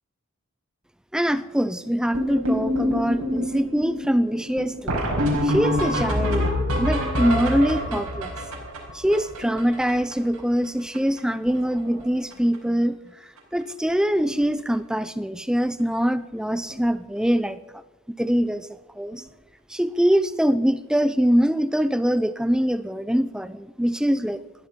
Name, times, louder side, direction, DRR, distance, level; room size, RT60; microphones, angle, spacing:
voice 1, 1.1-5.0 5.4-6.5 6.8-8.3 8.9-13.0 13.2-17.8 18.1-19.2 19.7-24.4, equal, 5° right, 14 dB, 0.5 m, -23 dB
sound 1, 2.1-10.4 10.6-10.7 10.9-11.2 11.5-12.0 12.3-12.6 13.4-13.5 13.9-14.0 14.3-14.4 16.7-16.8 19.1-19.2, left 1 dB, 90° right, 4.9 m, -26 dB
20.5 x 13.0 x 5.2 m, 1.0 s
head